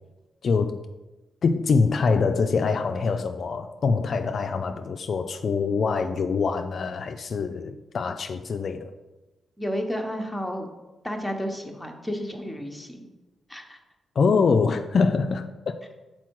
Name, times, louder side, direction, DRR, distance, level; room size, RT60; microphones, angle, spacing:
voice 1, 0.4-0.8 1.4-8.9 14.2-15.8, left 4 dB, 55° left, 7 dB, 0.3 m, -24 dB
voice 2, 9.6-10.7 11.0-13.1 13.5-13.8, equal, 5° left, 2 dB, 0.9 m, -31 dB
6.0 x 4.4 x 4.6 m, 1.1 s
cardioid pair, 100°, 0 cm